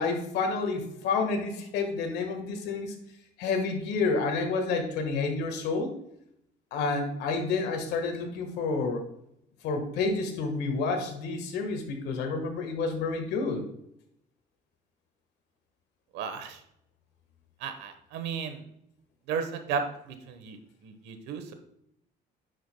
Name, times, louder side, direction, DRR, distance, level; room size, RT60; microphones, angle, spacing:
voice 1, 0.0-2.9 3.4-5.9 6.7-9.1 9.6-13.6, left 4 dB, 85° left, 4 dB, 1.5 m, -29 dB
voice 2, 16.1-16.6 17.6-18.6 19.3-21.5, right 6 dB, 90° right, 8 dB, 1.1 m, -34 dB
9.6 x 6.4 x 2.2 m, 0.76 s
cardioid pair, 110°, 17 cm